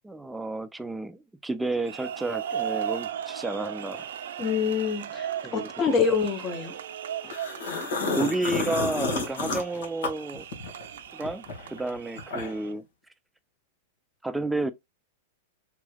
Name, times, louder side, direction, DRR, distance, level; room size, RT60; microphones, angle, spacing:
voice 1, 0.0-4.1 5.4-6.0 8.1-10.4 11.1-12.8 14.2-14.7, right 2 dB, 5° right, 0.4 m, -31 dB
sound 1, 1.6-12.7, right 9 dB, 80° right, 0.5 m, -37 dB
voice 2, 4.4-5.3 5.5-6.8 7.2-7.3, left 6 dB, 25° left, 0.8 m, -26 dB
sound 2, 7.3-10.9 11.2-12.7, left 3 dB, 75° left, 1.5 m, -30 dB
3.7 x 3.1 x 2.3 m
hypercardioid pair, 130°, 0 cm